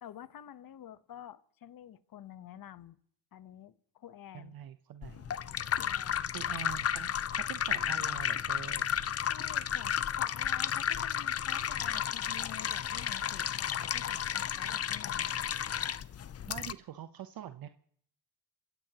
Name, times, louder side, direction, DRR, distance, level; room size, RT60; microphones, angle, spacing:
voice 1, 0.0-3.0 3.3-4.6 5.7-6.3 9.3-15.4, left 10 dB, 55° left, 1.1 m, -49 dB
voice 2, 4.3-5.4 6.3-8.9 16.5-17.7, right 11 dB, 60° right, 0.9 m, -45 dB
sound 1, 5.0-16.7, left 9 dB, 35° left, 0.6 m, -33 dB
28.5 x 16.0 x 3.0 m
cardioid pair, 80°, 40 cm